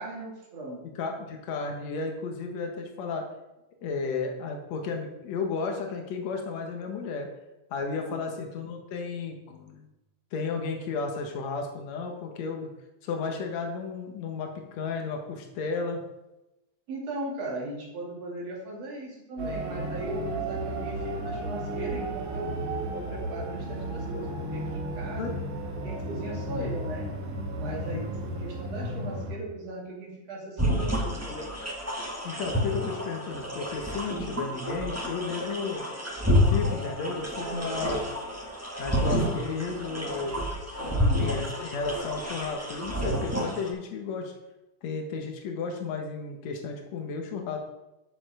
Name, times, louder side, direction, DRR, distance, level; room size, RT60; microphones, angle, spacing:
voice 1, 0.0-0.9 7.9-8.2 16.9-22.5 22.9-25.4 25.8-27.1 27.6-31.5 37.4-37.9 40.8-41.3, right 1 dB, 60° right, -2 dB, 3.8 m, -38 dB
voice 2, 0.8-3.3 3.8-7.3 7.7-9.9 10.3-12.7 13.0-16.0 25.2-25.3 26.5-26.7 27.7-28.0 32.2-35.9 36.5-38.0 38.8-40.4 41.2-44.3 44.8-47.6, left 4 dB, 65° left, 3 dB, 2.7 m, -33 dB
sound 1, 19.4-29.4, right 1 dB, 85° right, 3.3 m, -33 dB
sound 2, 30.6-43.7, equal, 10° right, 1.0 m, -29 dB
12.0 x 7.1 x 5.0 m, 0.96 s
omnidirectional pair, 3.4 m